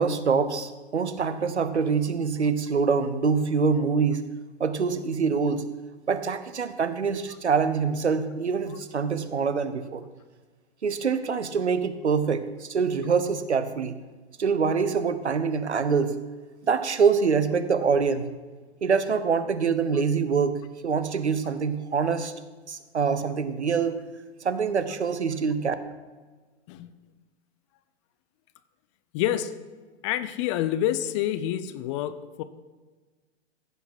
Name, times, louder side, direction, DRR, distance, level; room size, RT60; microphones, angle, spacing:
voice 1, 0.0-4.2 4.6-5.7 6.1-10.0 10.8-14.0 14.4-16.2 16.6-18.3 18.8-22.3 22.7-24.0 24.4-25.7, right 5 dB, 80° right, 11 dB, 1.0 m, -25 dB
voice 2, 29.1-29.6 30.0-32.4, left 12 dB, 30° left, 13 dB, 0.5 m, -27 dB
15.0 x 5.9 x 6.0 m, 1.3 s
figure-of-eight pair, 110°, 33 cm